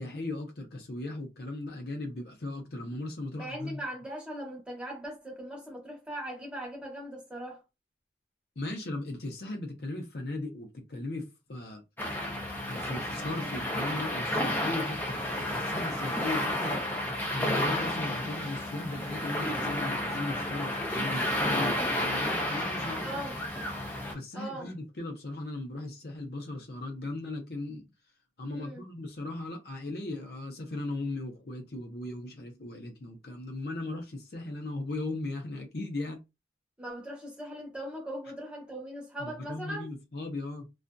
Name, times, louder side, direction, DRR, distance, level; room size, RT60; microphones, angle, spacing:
voice 1, 0.0-3.8 8.6-11.8 12.7-16.8 17.3-23.5 24.1-27.9 28.4-36.2 39.2-40.7, left 2 dB, 60° left, 0.6 m, -37 dB
voice 2, 3.3-7.6 23.0-23.4 24.3-24.7 28.5-28.8 36.8-39.9, right 1 dB, 5° right, 0.9 m, -39 dB
sound 1, 12.0-24.1, left 1 dB, 10° left, 0.5 m, -31 dB
2.5 x 2.4 x 2.2 m
head